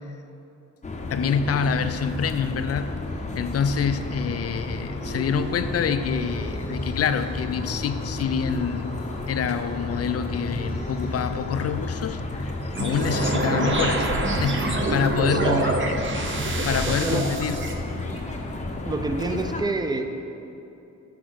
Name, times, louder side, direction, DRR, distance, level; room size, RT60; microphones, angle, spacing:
sound 1, 0.8-19.6, left 2 dB, 25° left, 0.7 m, -32 dB
voice 1, 1.1-2.9 3.4-9.0 9.3-15.7 16.3-17.6, left 6 dB, 55° left, 10 dB, 0.4 m, -26 dB
sound 2, 4.7-13.6, left 1 dB, 65° right, 2.0 m, -42 dB
sound 3, 12.7-17.7, right 2 dB, 40° right, 0.9 m, -26 dB
voice 2, 15.2-15.7 16.9-17.3 18.8-20.1, right 2 dB, 15° right, 6 dB, 0.5 m, -27 dB
6.2 x 5.9 x 6.3 m, 2.8 s
wide cardioid pair, 110°, 30 cm